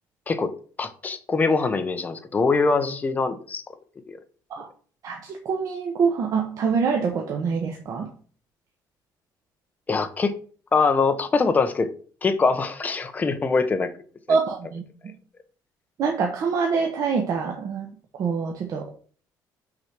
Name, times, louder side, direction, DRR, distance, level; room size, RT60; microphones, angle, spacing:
voice 1, 0.8-3.6 4.1-4.2 9.9-10.3 10.7-11.9 12.2-13.9 14.3-14.4, left 4 dB, 20° left, 0.9 m, -23 dB
voice 2, 5.0-8.1 14.3-15.1 16.0-17.9 18.2-18.9, right 5 dB, 50° right, 1.2 m, -25 dB
6.1 x 4.9 x 6.0 m
cardioid pair, 160°, 8 cm